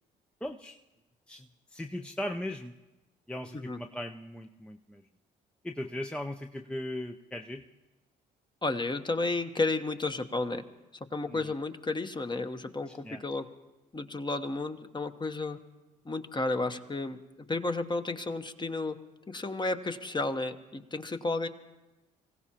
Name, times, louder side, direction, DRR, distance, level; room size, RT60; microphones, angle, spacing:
voice 1, 0.4-0.8 1.3-2.7 3.3-5.0 5.6-7.6 11.3-11.4 12.9-13.2, left 1 dB, 5° left, 4 dB, 0.6 m, -38 dB
voice 2, 8.6-10.6 11.1-13.5 13.9-15.6 16.0-17.2 17.5-19.0 19.3-21.5, left 2 dB, 20° left, 8 dB, 1.1 m, -32 dB
25.0 x 16.0 x 2.9 m, 1.1 s
hypercardioid pair, 55°, 20 cm